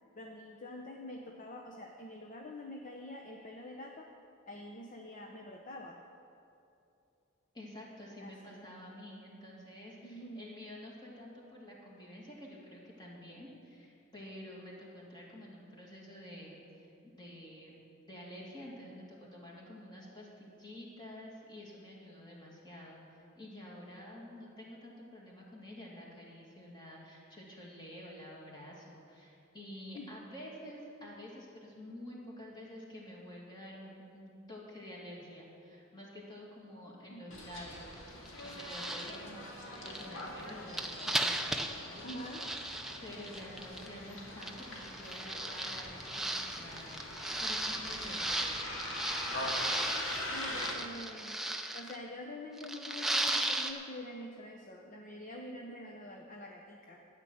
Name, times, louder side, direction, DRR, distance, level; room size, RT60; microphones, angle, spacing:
voice 1, 0.2-4.1 4.5-6.0 8.2-8.6 10.0-10.5 29.9-30.1 37.1-37.3 42.0-42.4 50.3-51.5 51.7-57.0, left 1 dB, 40° left, 1 dB, 0.7 m, -46 dB
voice 2, 7.5-17.7 18.1-23.0 23.4-38.0 38.4-42.2 43.0-47.0 47.4-48.4, left 1 dB, 20° left, -4 dB, 2.3 m, -49 dB
Bus, 37.3-50.7, left 1 dB, 65° left, 2.1 m, -43 dB
sound 1, 37.8-37.9 38.3-39.2 39.7-43.9 44.4-52.0 52.6-53.7, right 1 dB, ahead, 0.5 m, -36 dB
12.5 x 9.1 x 6.4 m, 2.7 s
head